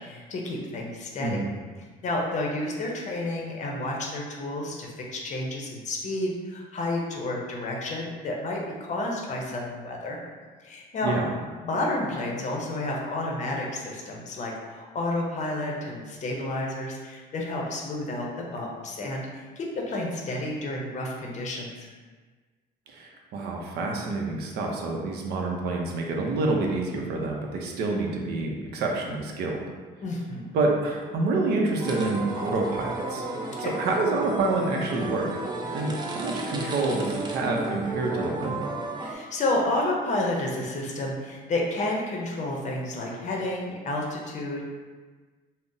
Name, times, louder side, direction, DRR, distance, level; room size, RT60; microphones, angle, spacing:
voice 1, 0.0-1.4 2.0-10.2 10.6-21.9 30.0-30.6 33.6-33.7 39.0-44.6, left 2 dB, 45° left, -1 dB, 0.6 m, -30 dB
voice 2, 22.9-29.6 30.5-33.2 33.6-35.3 35.7-38.6, right 3 dB, 70° right, 0 dB, 0.6 m, -27 dB
sound 1, 31.8-39.1, right 2 dB, 25° right, 0.4 m, -33 dB
2.5 x 2.0 x 3.7 m, 1.4 s
cardioid pair, 110°, 17 cm